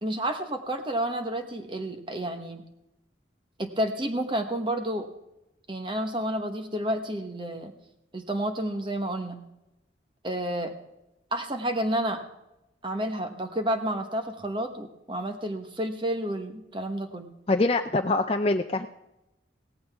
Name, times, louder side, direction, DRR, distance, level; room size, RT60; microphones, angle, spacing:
voice 1, 0.0-2.6 3.6-5.1 5.7-7.7 8.1-9.4 10.2-10.7 11.3-12.2 12.8-17.3, right 1 dB, 25° right, 6 dB, 1.2 m, -30 dB
voice 2, 17.5-18.9, left 2 dB, 30° left, 5 dB, 0.4 m, -24 dB
17.0 x 15.0 x 3.5 m, 0.90 s
head